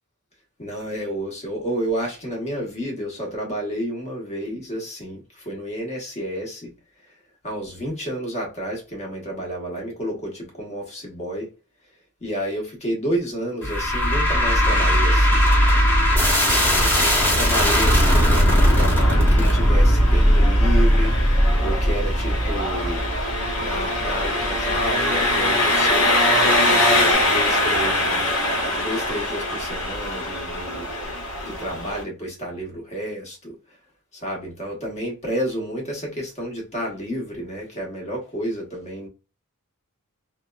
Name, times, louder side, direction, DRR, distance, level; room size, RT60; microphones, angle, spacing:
voice 1, 0.6-6.7 7.4-11.5 12.2-15.4 16.7-23.0 23.6-28.2 28.5-30.9 31.4-33.5 34.1-39.1, equal, 30° left, 1.0 m, -30 dB
sound 1, 13.6-24.9, equal, 10° left, 1.1 m, -18 dB
Engine, 18.0-32.0, left 1 dB, 75° left, 1.0 m, -23 dB
2.8 x 2.1 x 2.2 m
head